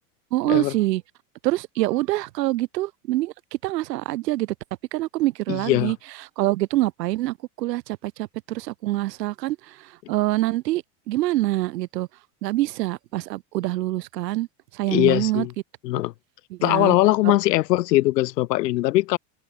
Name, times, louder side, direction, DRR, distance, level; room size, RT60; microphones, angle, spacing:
voice 1, 0.3-1.0 1.4-3.3 3.6-4.5 4.9-6.0 6.4-12.1 12.4-14.5 14.7-15.5 16.5-16.9 17.2-17.3, right 17 dB, 85° right, 4.1 m, -25 dB
voice 2, 5.5-5.9 14.9-15.5 15.8-16.1 16.6-19.2, left 17 dB, 85° left, 5.0 m, -21 dB
supercardioid pair, 155°, 48 cm